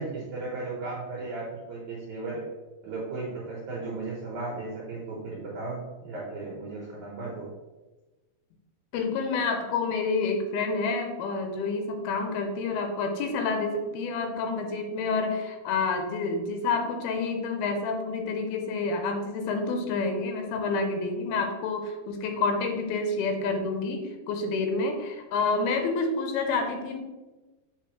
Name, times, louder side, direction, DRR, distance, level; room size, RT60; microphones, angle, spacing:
voice 1, 0.0-2.5 2.8-7.5, right 3 dB, 65° right, -5 dB, 2.1 m, -35 dB
voice 2, 8.9-27.0, left 4 dB, 90° left, 4 dB, 2.6 m, -28 dB
6.9 x 5.2 x 3.1 m, 1.2 s
omnidirectional pair, 4.4 m